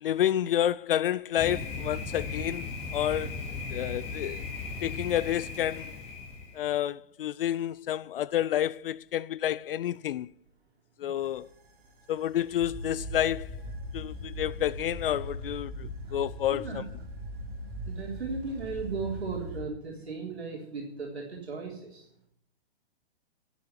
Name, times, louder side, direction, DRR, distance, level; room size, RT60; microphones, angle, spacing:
voice 1, 0.0-3.4 3.7-4.4 4.8-5.9 6.5-10.3 11.0-11.5 12.1-13.5 13.9-16.8, left 11 dB, 60° left, 0.4 m, -29 dB
Thunder, 1.4-6.6, left 3 dB, 20° left, 2.2 m, -37 dB
sound 1, 11.2-19.6, equal, 25° right, 3.0 m, -40 dB
voice 2, 16.5-17.1 17.9-22.1, right 4 dB, 90° right, 3.7 m, -36 dB
11.5 x 7.0 x 9.3 m
hypercardioid pair, 135°, 31 cm